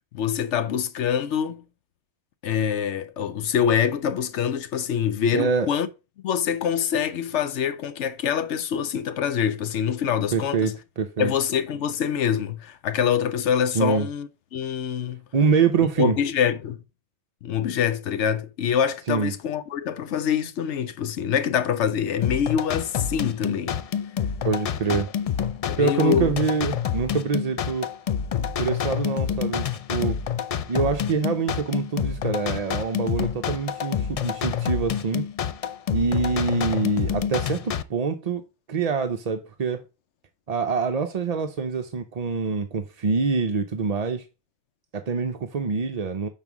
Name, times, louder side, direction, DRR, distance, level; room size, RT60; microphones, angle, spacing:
voice 1, 0.1-1.6 2.4-5.9 6.2-10.8 11.2-15.2 16.0-16.8 17.4-23.8 24.9-25.0 25.7-26.3, left 8 dB, 90° left, 1.0 m, -25 dB
voice 2, 5.3-5.7 10.3-11.3 13.7-14.1 15.3-16.2 19.1-19.3 24.4-25.1 25.8-27.9 28.6-30.2 30.7-35.2 35.9-38.4 38.7-39.8 40.5-44.3 44.9-46.3, right 5 dB, 45° right, 0.5 m, -25 dB
sound 1, 22.2-37.8, left 8 dB, 70° left, 0.3 m, -28 dB
5.5 x 4.1 x 6.0 m
omnidirectional pair, 1.2 m